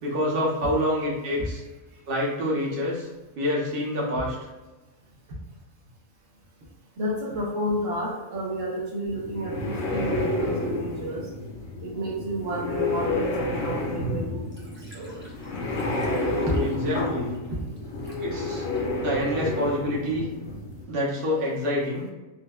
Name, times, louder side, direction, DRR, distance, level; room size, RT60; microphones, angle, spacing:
voice 1, 0.0-1.6 2.1-3.1 3.4-4.3 16.6-17.4 18.2-18.6 19.0-20.2 20.9-22.1, left 1 dB, 50° right, -5 dB, 1.0 m, -27 dB
voice 2, 7.0-11.3 11.8-15.2 16.5-16.6 17.5-17.6, equal, 75° right, -5 dB, 1.2 m, -31 dB
sound 1, 9.1-20.8, left 2 dB, 65° left, 0.9 m, -30 dB
Liquid, 14.5-18.2 18.8-19.2, equal, 20° right, 0.3 m, -43 dB
4.2 x 2.1 x 2.2 m, 1.2 s
omnidirectional pair, 1.4 m